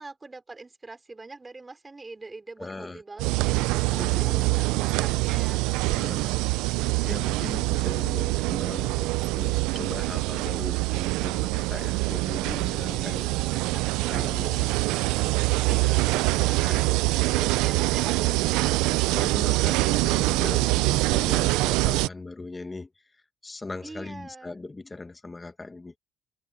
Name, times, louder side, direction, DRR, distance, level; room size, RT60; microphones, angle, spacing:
voice 1, 0.0-6.0 12.9-15.0 15.6-16.7 17.1-18.9 23.8-24.6, right 3 dB, 25° right, 4.2 m, -44 dB
voice 2, 2.6-3.0 3.9-4.6 5.9-6.4 6.7-13.3 14.1-14.7 15.2-15.4 15.7-15.9 16.6-16.9 17.4-17.5 19.1-22.9 23.4-26.0, left 3 dB, 20° left, 1.8 m, -39 dB
sound 1, 3.2-22.1, right 21 dB, 85° right, 0.5 m, -25 dB
supercardioid pair, 70°, 0 cm